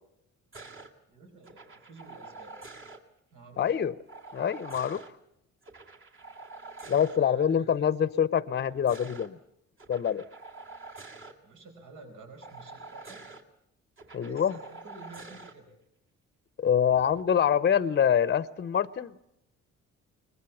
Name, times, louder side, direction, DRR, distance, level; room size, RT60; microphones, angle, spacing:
sound 1, 0.5-0.9 1.4-3.0 4.1-5.1 5.6-7.2 8.5-9.3 9.8-11.3 12.4-13.4 14.0-15.5 16.8-17.2, right 3 dB, 40° right, 2.2 m, -47 dB
voice 1, 1.1-2.5 3.3-3.7 6.8-7.9 11.4-13.3 14.2-15.8, right 3 dB, 80° right, 4.8 m, -50 dB
voice 2, 3.6-3.9 4.3-5.0 6.9-9.4 9.9-10.2 14.1-14.5 16.6-19.1, left 8 dB, 35° left, 0.7 m, -25 dB
22.0 x 20.5 x 7.1 m
cardioid pair, 90°, 30 cm